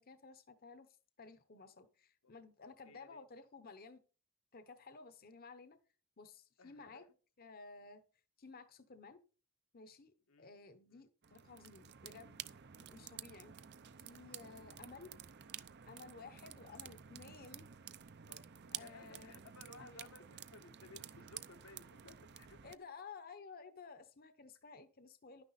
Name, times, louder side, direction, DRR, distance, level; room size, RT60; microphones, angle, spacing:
voice 1, 0.0-4.0 4.5-5.8 6.2-7.0 7.4-8.0 8.4-9.2 9.7-12.4 12.8-13.5 14.0-15.1 15.9-17.7 18.7-19.3 19.8-20.1 22.6-25.4, left 4 dB, 45° left, 0.9 m, -55 dB
voice 2, 2.8-3.2 6.6-7.1 10.3-10.5 10.9-11.1 16.6-16.9 18.3-22.6, left 2 dB, 85° left, 1.4 m, -59 dB
sound 1, 11.2-22.8, right 9 dB, 55° right, 0.6 m, -52 dB
11.5 x 9.9 x 4.0 m
head